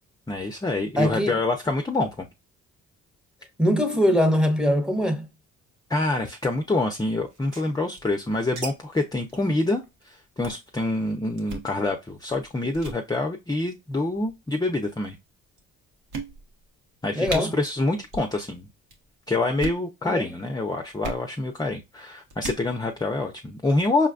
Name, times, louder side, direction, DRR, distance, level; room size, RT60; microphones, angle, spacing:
voice 1, 0.3-2.3 5.9-15.2 17.0-18.7 19.3-24.1, left 2 dB, 15° left, 0.6 m, -26 dB
voice 2, 1.0-1.4 3.6-5.3 17.1-17.5 20.0-20.3, equal, 5° right, 0.9 m, -22 dB
sound 1, 7.3-8.7 8.9-9.0 9.3-9.5 9.8-10.0 10.4-10.7 11.4-11.7 12.3-12.5 12.7-13.0 13.9-14.3 15.0-15.1 15.6-15.7 16.1-16.7 16.9-17.0 17.2-17.4 18.1-18.3 18.6-19.0 19.5-19.8 21.0-21.2 22.3-22.6, right 2 dB, 85° right, 1.3 m, -36 dB
5.5 x 2.2 x 2.5 m
cardioid pair, 90°, 30 cm